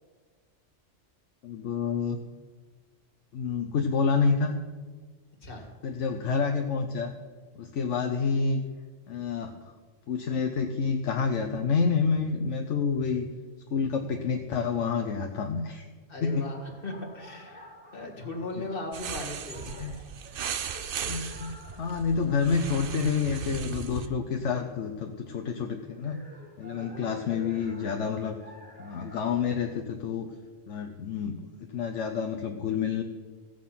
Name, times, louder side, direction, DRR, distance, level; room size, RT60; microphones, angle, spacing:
voice 1, 1.4-2.2 3.3-4.6 5.8-7.1 7.6-8.6 9.1-9.7 10.1-13.3 13.7-15.8 16.2-16.4 18.6-18.7 19.8-20.0 21.1-26.2 26.6-28.4 28.8-30.3 30.7-31.4 31.7-33.0, left 5 dB, 70° left, 5 dB, 1.1 m, -28 dB
voice 2, 16.1-19.9 26.7-27.3, left 2 dB, 45° left, 2 dB, 2.0 m, -38 dB
sound 1, 16.3-29.5, equal, 5° right, 1.7 m, -52 dB
sound 2, 18.9-24.1, right 8 dB, 55° right, 0.7 m, -37 dB
15.5 x 7.7 x 5.8 m, 1.4 s
omnidirectional pair, 1.3 m